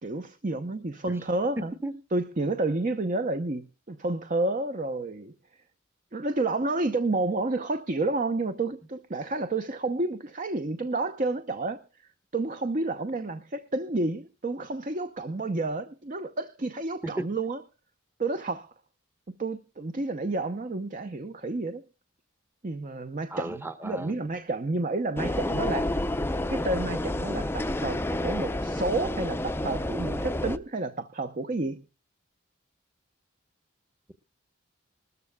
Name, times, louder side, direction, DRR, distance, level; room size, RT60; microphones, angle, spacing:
voice 1, 0.0-1.7 2.1-5.3 6.1-17.6 18.2-18.7 19.4-21.8 22.6-25.9 26.5-31.8, right 2 dB, 40° right, 0.7 m, -30 dB
voice 2, 23.3-24.1, right 2 dB, 10° right, 0.9 m, -34 dB
sound 1, 25.2-30.6, left 1 dB, 10° left, 0.5 m, -29 dB
20.5 x 13.5 x 2.2 m
head